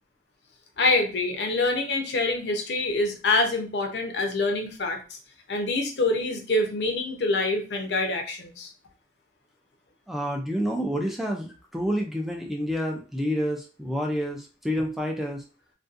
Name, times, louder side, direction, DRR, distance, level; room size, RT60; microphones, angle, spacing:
voice 1, 0.8-5.2 5.5-8.7, left 2 dB, 70° left, 4 dB, 0.6 m, -26 dB
voice 2, 10.1-15.4, equal, ahead, 1 dB, 0.3 m, -28 dB
2.6 x 2.2 x 2.4 m, 0.34 s
head